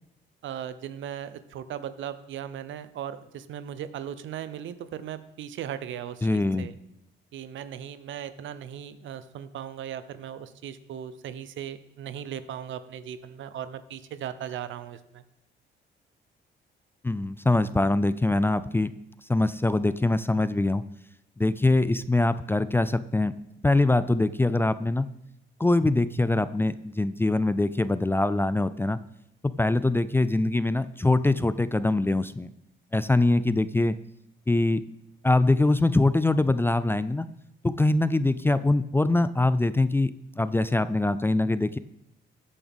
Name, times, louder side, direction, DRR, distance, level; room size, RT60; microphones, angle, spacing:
voice 1, 0.4-6.8 7.3-15.2, right 9 dB, 75° right, 13 dB, 0.8 m, -38 dB
voice 2, 6.2-6.7 17.0-18.9 19.3-20.8 21.4-23.3 23.6-25.1 25.6-29.0 29.4-32.5 32.9-34.0 34.5-34.8 35.2-37.3 37.6-41.8, left 2 dB, 10° left, 15 dB, 0.4 m, -23 dB
15.0 x 8.6 x 3.6 m, 0.82 s
cardioid pair, 90°, 20 cm